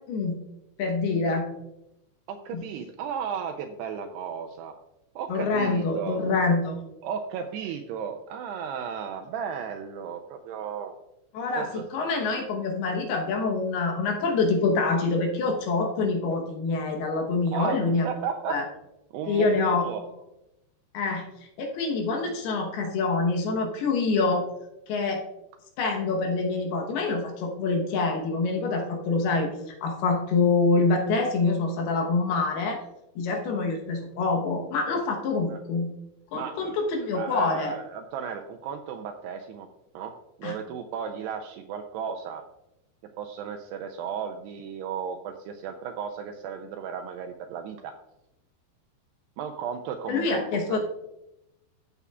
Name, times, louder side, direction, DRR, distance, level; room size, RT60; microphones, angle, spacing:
voice 1, 0.8-1.5 2.5-2.6 5.3-6.8 11.3-18.1 18.5-18.6 19.3-19.8 20.9-24.5 24.9-25.3 25.8-32.8 33.2-35.9 36.3-37.7 40.4-40.6 50.1-50.8, left 3 dB, 70° left, 2 dB, 2.8 m, -26 dB
voice 2, 2.3-4.7 5.2-6.2 7.0-10.9 11.5-11.8 17.5-18.6 19.1-20.0 35.5-35.6 36.3-36.8 37.1-39.7 39.9-40.1 40.4-42.4 43.2-47.9 49.4-50.8, right 7 dB, 90° right, 5 dB, 2.4 m, -34 dB
15.0 x 6.9 x 2.4 m, 0.89 s
omnidirectional pair, 5.3 m